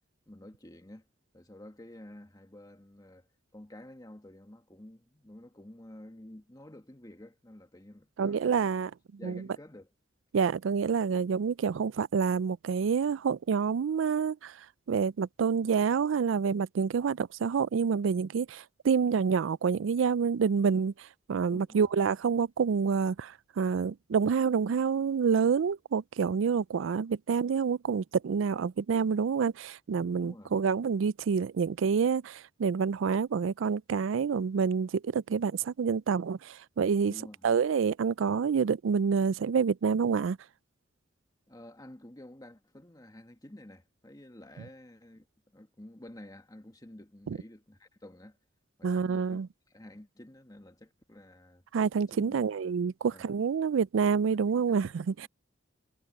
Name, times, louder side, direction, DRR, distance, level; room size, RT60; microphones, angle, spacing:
voice 1, 0.3-1.1 1.3-3.3 3.5-8.7 9.2-9.9 21.5-21.9 30.2-30.6 37.1-37.5 41.5-45.3 45.5-48.4 48.8-49.4 49.7-51.6 52.1-52.7 53.1-53.3 54.5-55.3, left 1 dB, 20° left, 1.6 m, -50 dB
voice 2, 8.2-8.9 9.2-9.4 10.3-14.5 14.9-20.9 21.3-37.1 37.4-40.4 47.3-47.4 48.8-49.5 51.7-55.3, right 6 dB, 75° right, 0.4 m, -27 dB
head